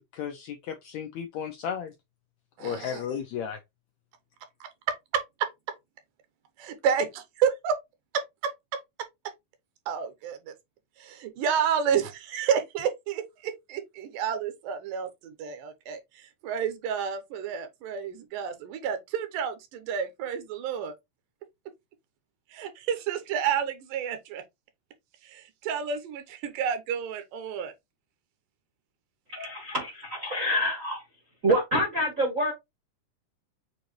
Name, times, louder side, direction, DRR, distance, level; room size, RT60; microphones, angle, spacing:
voice 1, 0.1-1.9 2.6-3.6, left 8 dB, 80° left, 1.6 m, -34 dB
voice 2, 2.6-3.0 4.6-5.5 6.6-7.8 8.1-8.5 9.9-10.5 11.0-20.9 22.5-24.4 25.2-27.7 29.4-29.5, right 7 dB, 85° right, 2.5 m, -30 dB
voice 3, 29.3-31.0 31.4-32.5, equal, 65° right, 0.8 m, -27 dB
6.7 x 2.6 x 3.0 m
omnidirectional pair, 3.8 m